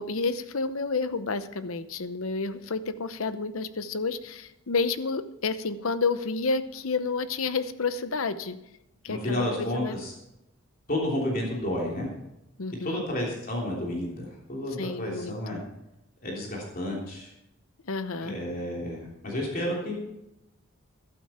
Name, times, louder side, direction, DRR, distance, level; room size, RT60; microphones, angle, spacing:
voice 1, 0.0-8.6 9.0-10.0 12.6-13.0 14.8-15.6 17.9-18.4, left 4 dB, 85° left, 12 dB, 0.8 m, -30 dB
voice 2, 9.1-10.1 10.9-12.1 12.8-15.6 16.2-17.3 18.2-19.9, left 1 dB, 45° left, -2 dB, 3.2 m, -31 dB
13.5 x 12.0 x 4.4 m, 0.88 s
head